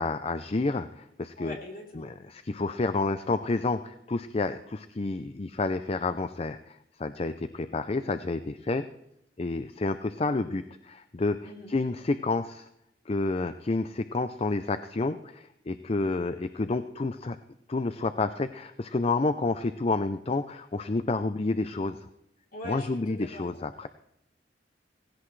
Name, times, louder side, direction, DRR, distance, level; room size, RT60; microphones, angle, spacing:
voice 1, 0.0-1.6 2.0-8.9 9.4-11.4 11.7-12.7 13.1-17.4 17.7-22.0 22.7-23.9, left 3 dB, 35° left, 11 dB, 0.5 m, -29 dB
voice 2, 1.4-2.1 11.4-11.7 22.5-23.5, left 1 dB, 55° left, 1 dB, 3.7 m, -42 dB
18.0 x 16.5 x 3.3 m, 0.79 s
head